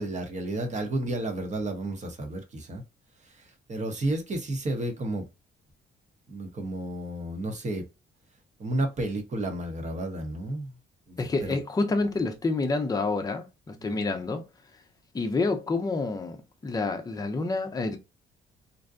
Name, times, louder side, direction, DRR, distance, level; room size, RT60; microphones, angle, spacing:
voice 1, 0.0-2.8 3.4-5.3 6.3-7.8 8.6-10.7 11.1-11.6 13.8-14.1, right 1 dB, 35° right, 0.8 m, -32 dB
voice 2, 11.2-14.4 15.1-16.4 16.6-18.0, left 3 dB, 20° left, 0.5 m, -28 dB
2.6 x 2.1 x 2.4 m
cardioid pair, 90°, 20 cm